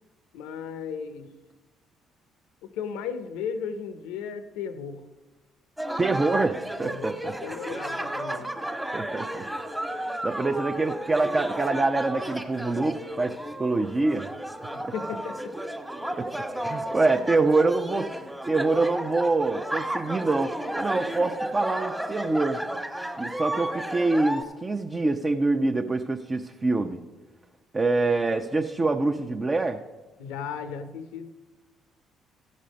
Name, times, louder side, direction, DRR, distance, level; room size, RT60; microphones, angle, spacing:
voice 1, 0.3-1.3 2.6-5.0 6.2-6.3 6.8-8.5 14.7-15.5 30.2-31.3, left 6 dB, 85° left, 10 dB, 0.6 m, -35 dB
sound 1, 5.8-24.4, right 1 dB, 10° right, 1.3 m, -33 dB
voice 2, 6.0-7.4 8.9-9.4 9.8-9.9 10.2-14.3 14.8-14.9 16.2-16.3 16.6-18.1 18.5-22.6 23.2-27.0 27.7-29.8, right 3 dB, 30° right, 4 dB, 0.6 m, -25 dB
14.5 x 5.4 x 5.2 m, 1.2 s
supercardioid pair, 65°, 0 cm